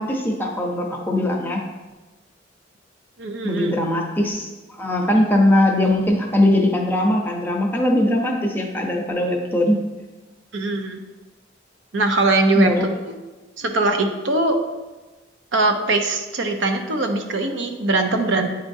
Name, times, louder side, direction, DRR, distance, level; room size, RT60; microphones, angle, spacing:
voice 1, 0.0-1.6 3.4-4.5 4.8-9.8 12.5-12.9, left 1 dB, 10° left, 0 dB, 0.7 m, -20 dB
voice 2, 3.2-3.7 5.1-5.2 10.5-11.0 11.9-12.7 13.1-13.2 13.6-14.6 15.5-18.5, right 2 dB, 80° right, 5 dB, 0.7 m, -21 dB
9.5 x 4.2 x 2.7 m, 1.2 s
head